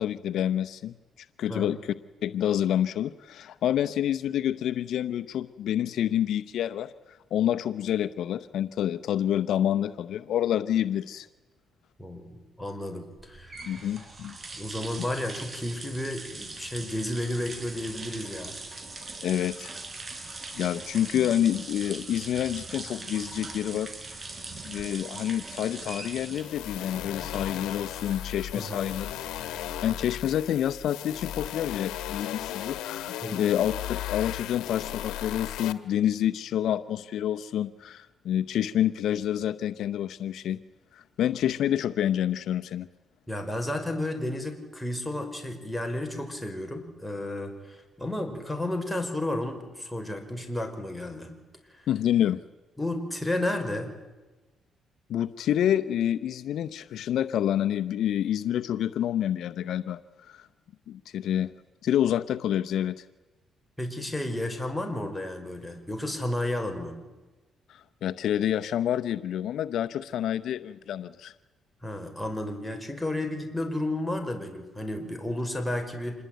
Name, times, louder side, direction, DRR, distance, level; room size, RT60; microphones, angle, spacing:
voice 1, 0.0-1.9 2.2-6.9 7.3-11.3 13.7-14.3 19.2-19.8 20.5-23.9 24.6-29.1 29.8-40.6 40.9-42.9 51.9-52.4 55.1-60.5 60.9-61.5 61.8-63.0 67.7-71.3, left 10 dB, 75° left, 10 dB, 0.8 m, -28 dB
voice 2, 12.0-13.6 14.5-18.6 28.5-28.8 33.2-33.4 43.3-51.3 51.7-51.9 52.8-53.9 63.8-67.0 71.8-76.2, left 1 dB, 5° left, 4 dB, 5.3 m, -32 dB
sound 1, 13.2-30.2, right 3 dB, 30° right, 5.0 m, -41 dB
sound 2, 26.3-35.7, left 12 dB, 90° left, 1.4 m, -36 dB
27.0 x 21.0 x 9.3 m, 1.2 s
cardioid pair, 90°, 0 cm